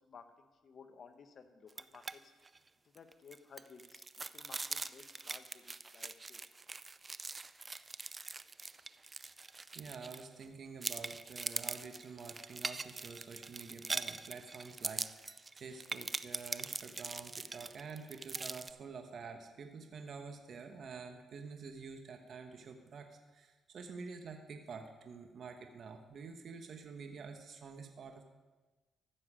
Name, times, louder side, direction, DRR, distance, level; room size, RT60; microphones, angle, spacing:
voice 1, 0.0-2.3 2.8-6.4, left 6 dB, 50° left, 8 dB, 1.1 m, -57 dB
sound 1, 1.7-2.1 2.4-2.6 3.0-10.4 10.8-18.7, right 3 dB, 25° right, 0.4 m, -42 dB
voice 2, 9.7-28.2, right 5 dB, 55° right, 5 dB, 1.2 m, -48 dB
14.5 x 6.9 x 5.1 m, 1.2 s
cardioid pair, 90°, 0 cm